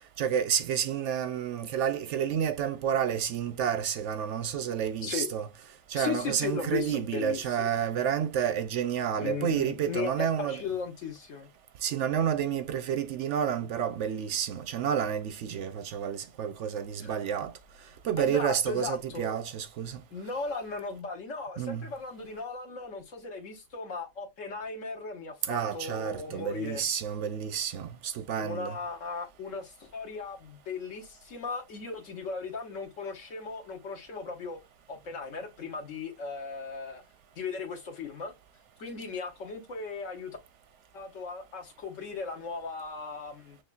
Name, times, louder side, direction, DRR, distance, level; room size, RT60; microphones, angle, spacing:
voice 1, 0.2-5.5 5.9-10.6 11.8-17.5 18.0-20.0 21.6-21.9 25.5-28.8, right 8 dB, 65° right, 0.8 m, -30 dB
voice 2, 5.9-7.8 9.2-11.5 17.0-17.1 18.2-19.4 20.1-26.8 28.4-34.6 34.9-37.0 37.4-38.3 38.8-40.4 40.9-43.6, left 4 dB, 65° left, 1.4 m, -37 dB
6.5 x 2.3 x 2.4 m
omnidirectional pair, 1.5 m